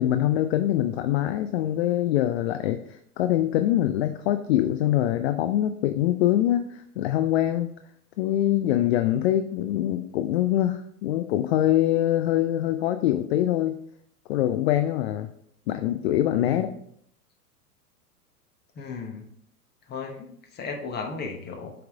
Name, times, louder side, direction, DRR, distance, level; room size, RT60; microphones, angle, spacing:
voice 1, 0.0-7.7 8.2-13.8 14.3-15.3 15.7-16.7, left 12 dB, 45° left, 8 dB, 0.5 m, -24 dB
voice 2, 18.8-19.3 19.9-20.3 20.5-21.7, left 5 dB, 20° left, 3 dB, 1.1 m, -35 dB
7.8 x 3.4 x 3.6 m, 0.68 s
hypercardioid pair, 100°, 47 cm